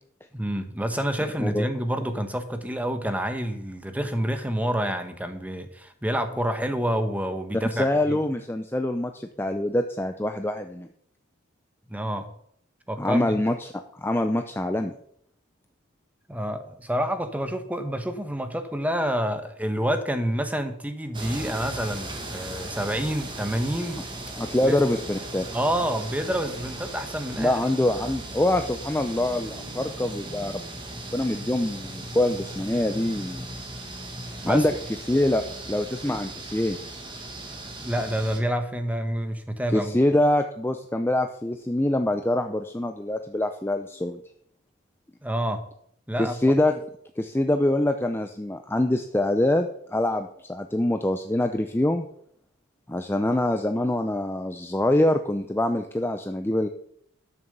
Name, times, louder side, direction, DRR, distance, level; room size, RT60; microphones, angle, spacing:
voice 1, 0.3-8.2 11.9-12.3 12.9-13.3 16.3-24.0 24.5-24.8 25.5-27.6 34.4-34.6 37.8-40.0 45.2-45.6 46.1-46.4, equal, 5° right, 8 dB, 1.0 m, -28 dB
voice 2, 7.7-10.9 13.0-14.9 24.4-25.5 27.4-30.6 31.0-33.4 34.5-34.7 35.1-35.4 35.7-36.8 39.7-44.2 46.2-46.8 47.2-52.1 52.9-56.7, left 1 dB, 10° left, 6 dB, 0.5 m, -25 dB
sound 1, 21.1-38.4, right 1 dB, 25° right, 1.8 m, -37 dB
12.5 x 7.1 x 6.7 m, 0.70 s
head